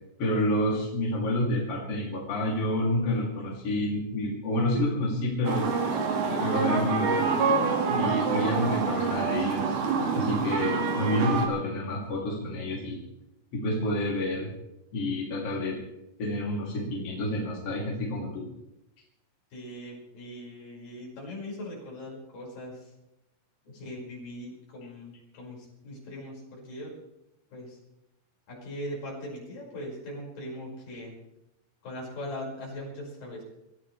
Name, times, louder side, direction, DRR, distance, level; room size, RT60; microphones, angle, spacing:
voice 1, 0.2-5.8 6.3-7.3 7.9-9.8 10.2-13.0 13.5-14.5 14.9-15.8 16.2-18.5, left 1 dB, 40° left, -3 dB, 3.6 m, -29 dB
sound 1, 5.5-11.5, right 5 dB, 80° right, 3.9 m, -26 dB
voice 2, 19.5-22.9 23.7-26.9 27.5-27.8 28.5-31.1 31.8-33.4, left 1 dB, 65° left, -3 dB, 7.2 m, -40 dB
26.0 x 14.5 x 3.3 m, 0.88 s
omnidirectional pair, 4.3 m